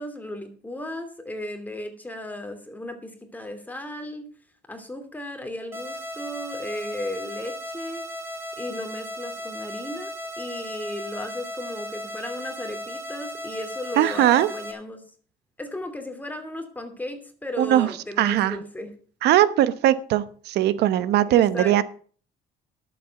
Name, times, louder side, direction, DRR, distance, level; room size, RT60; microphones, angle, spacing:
voice 1, 0.0-4.3 4.7-8.1 8.6-10.1 10.4-15.0 15.6-18.9 21.3-21.8, left 1 dB, 10° left, 6 dB, 2.7 m, -35 dB
sound 1, 5.7-14.7, equal, 15° right, 2.9 m, -36 dB
voice 2, 14.0-14.5 17.6-17.9 18.2-18.6 19.2-21.8, right 12 dB, 75° right, 15 dB, 1.0 m, -20 dB
11.5 x 7.7 x 6.8 m, 0.44 s
cardioid pair, 110°, 17 cm